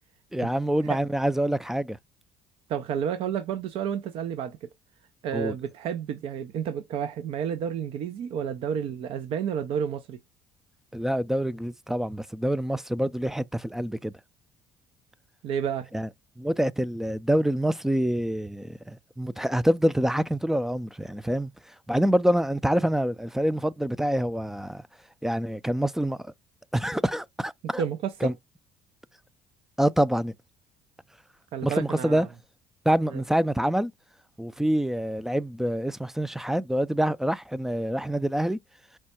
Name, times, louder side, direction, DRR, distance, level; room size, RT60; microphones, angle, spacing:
voice 1, 0.3-2.0 5.3-5.6 10.9-14.1 15.9-16.1 16.4-21.5 21.9-24.8 25.2-26.3 26.7-27.8 28.2-28.3 29.8-30.3 31.6-32.3 32.9-33.9 34.4-38.6, right 1 dB, 5° right, 0.4 m, -26 dB
voice 2, 2.7-4.6 5.2-10.2 15.4-15.9 27.8-28.3 31.5-32.3 33.1-33.2, right 8 dB, 65° right, 0.6 m, -30 dB
4.6 x 2.1 x 4.3 m
supercardioid pair, 75°, 10 cm